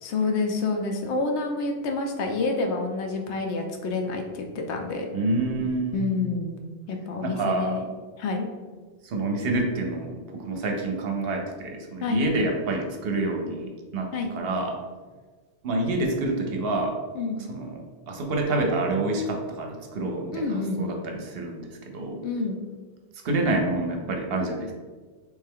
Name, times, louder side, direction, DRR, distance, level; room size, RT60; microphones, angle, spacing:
voice 1, 0.0-5.1 5.9-6.5 6.9-7.9 8.2-8.5 12.0-12.2 14.1-14.3 17.1-17.4 20.3-20.8 22.2-22.6, left 3 dB, 90° left, 3 dB, 0.9 m, -28 dB
voice 2, 5.1-6.0 7.2-7.8 9.0-14.8 15.6-16.9 17.5-17.8 18.1-22.2 23.2-24.7, right 2 dB, 65° right, 2 dB, 0.8 m, -27 dB
3.2 x 3.2 x 3.5 m, 1.4 s
omnidirectional pair, 1.1 m